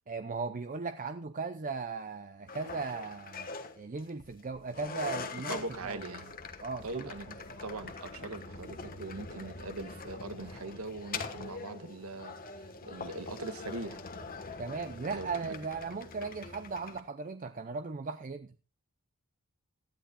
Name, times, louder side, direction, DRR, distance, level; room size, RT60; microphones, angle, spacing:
voice 1, 0.1-3.5 3.8-6.3 6.6-7.1 14.6-18.5, right 4 dB, 35° right, 9 dB, 0.6 m, -37 dB
sound 1, 2.5-17.0, left 4 dB, 40° left, 1.3 m, -43 dB
voice 2, 5.5-6.2 6.8-7.3 7.6-12.4 12.8-14.0 15.1-15.5, right 2 dB, 75° right, 9 dB, 1.5 m, -41 dB
18.0 x 13.0 x 2.3 m, 0.30 s
head